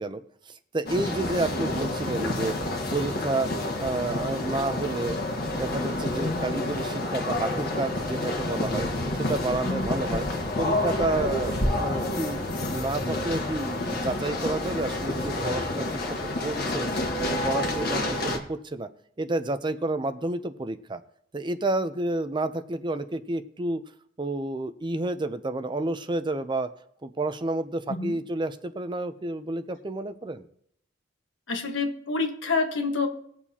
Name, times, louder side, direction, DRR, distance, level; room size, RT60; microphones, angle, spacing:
voice 1, 0.0-2.6 2.9-3.5 3.8-5.2 5.5-8.9 9.2-10.3 10.6-12.4 12.7-16.9 17.2-18.9 19.2-21.0 21.3-23.8 24.2-26.7 27.0-30.5, right 2 dB, 25° right, 11 dB, 0.5 m, -30 dB
sound 1, 0.9-18.4, left 1 dB, 55° left, 1.6 m, -29 dB
voice 2, 9.6-9.9 11.8-12.0 27.9-28.2 31.5-33.1, left 3 dB, 80° left, 4 dB, 1.4 m, -28 dB
19.5 x 7.2 x 2.9 m, 0.69 s
head